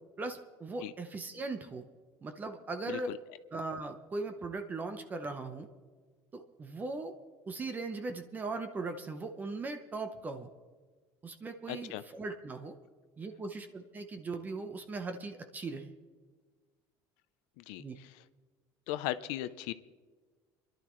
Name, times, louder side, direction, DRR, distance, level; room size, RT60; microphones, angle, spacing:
voice 1, 0.2-1.9 2.2-3.1 3.5-5.7 6.3-7.1 7.5-10.5 11.2-12.8 13.2-15.9 17.8-18.0, right 3 dB, 20° right, 7 dB, 0.9 m, -39 dB
voice 2, 11.7-12.0 17.6-17.8 18.9-19.7, left 14 dB, 85° left, 13 dB, 0.6 m, -37 dB
27.5 x 11.5 x 3.1 m, 1.4 s
cardioid pair, 140°, 8 cm